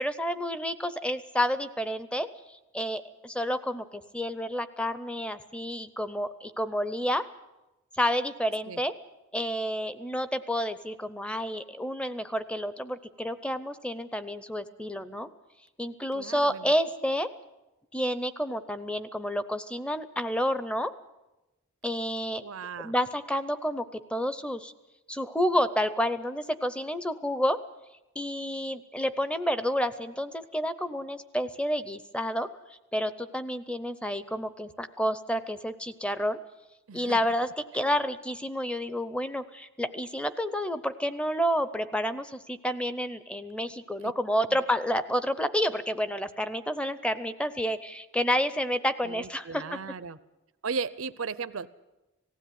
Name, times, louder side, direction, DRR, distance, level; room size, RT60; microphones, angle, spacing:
voice 1, 0.0-7.3 8.0-8.9 9.3-15.3 15.8-17.3 17.9-20.9 21.8-22.4 22.8-24.7 25.1-27.6 28.2-32.5 32.9-36.4 36.9-49.8, equal, 5° left, 13 dB, 0.7 m, -30 dB
voice 2, 16.1-16.7 22.4-22.9 36.9-37.3 44.0-44.1 44.5-44.6 49.0-50.2 50.6-51.7, right 5 dB, 70° right, 14 dB, 0.7 m, -36 dB
18.5 x 16.0 x 9.3 m, 1.0 s
head